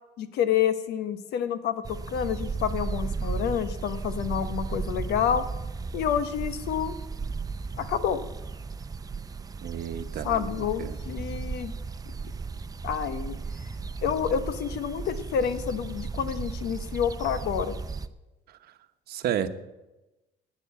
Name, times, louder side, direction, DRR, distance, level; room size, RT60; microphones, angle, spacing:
voice 1, 0.2-5.5 5.9-7.0 7.8-8.2 10.2-11.7 12.8-13.4 14.0-17.8, left 8 dB, 80° left, 12 dB, 1.0 m, -28 dB
sound 1, 1.8-18.1, right 4 dB, 20° right, 0.6 m, -35 dB
voice 2, 9.6-10.5 10.8-11.0 19.1-19.5, right 9 dB, 65° right, 9 dB, 1.0 m, -31 dB
12.0 x 9.4 x 8.2 m, 1.0 s
cardioid pair, 110°, 17 cm